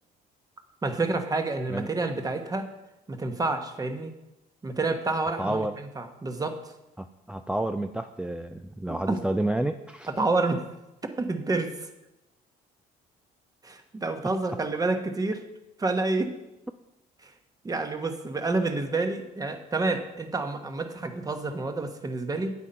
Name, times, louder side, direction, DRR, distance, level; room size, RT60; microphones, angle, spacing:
voice 1, 0.8-2.7 3.1-4.1 4.6-5.7 6.0-6.6 8.9-9.2 10.2-10.6 11.2-11.7 13.6-15.4 15.8-16.3 17.2-17.3 17.6-22.5, right 3 dB, 20° right, 7 dB, 1.2 m, -28 dB
voice 2, 5.4-5.7 7.0-10.1, right 1 dB, 5° right, 7 dB, 0.4 m, -30 dB
9.3 x 8.3 x 5.5 m, 0.93 s
cardioid pair, 110°, 17 cm